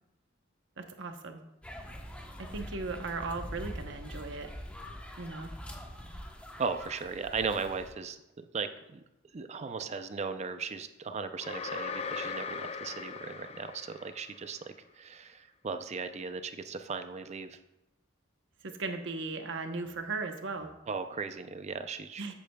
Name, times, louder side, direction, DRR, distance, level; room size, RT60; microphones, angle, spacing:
voice 1, 0.8-1.4 2.4-4.5 5.2-5.5 18.6-20.7 22.2-22.3, right 3 dB, 65° right, 6 dB, 0.9 m, -37 dB
sound 1, 1.6-7.9, equal, 5° left, 0.9 m, -44 dB
voice 2, 6.6-8.2 8.5-9.0 9.3-17.6 20.9-22.3, right 5 dB, 35° right, 9 dB, 0.5 m, -37 dB
sound 2, 11.4-14.5, left 5 dB, 30° left, 0.4 m, -39 dB
13.5 x 8.4 x 2.3 m, 0.89 s
head